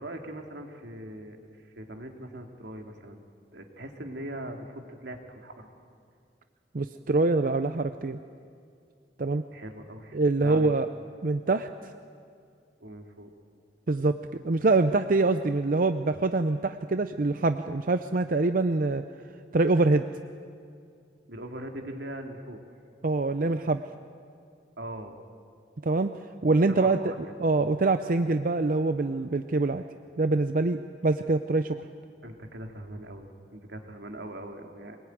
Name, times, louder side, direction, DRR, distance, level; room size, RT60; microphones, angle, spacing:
voice 1, 0.0-1.4 1.6-3.2 3.5-5.7 9.5-10.7 12.8-13.3 21.3-22.6 24.8-25.2 26.7-27.1 32.2-35.0, right 1 dB, 80° right, 3 dB, 2.5 m, -41 dB
voice 2, 6.7-8.2 9.2-9.4 10.1-10.9 11.2-11.9 13.9-19.0 19.5-20.1 23.0-23.8 25.8-26.1 26.4-27.0 27.4-29.8 30.2-31.8, right 3 dB, 50° right, 9 dB, 0.6 m, -25 dB
23.5 x 19.5 x 9.3 m, 2.3 s
head